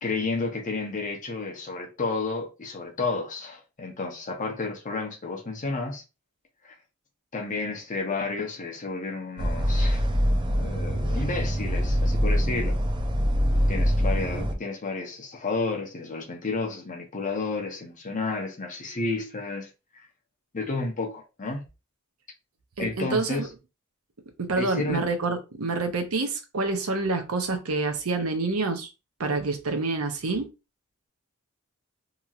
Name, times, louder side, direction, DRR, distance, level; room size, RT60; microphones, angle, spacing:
voice 1, 0.0-6.0 6.6-6.7 7.3-10.0 10.4-12.8 13.7-20.1 20.5-21.6 22.8-23.5 24.6-25.0, left 3 dB, 35° left, 0.8 m, -31 dB
sound 1, 9.4-14.5, equal, 20° right, 0.4 m, -24 dB
voice 2, 22.8-23.5 24.4-28.9 29.2-30.5, right 3 dB, 75° right, 0.7 m, -27 dB
2.9 x 2.8 x 2.4 m
head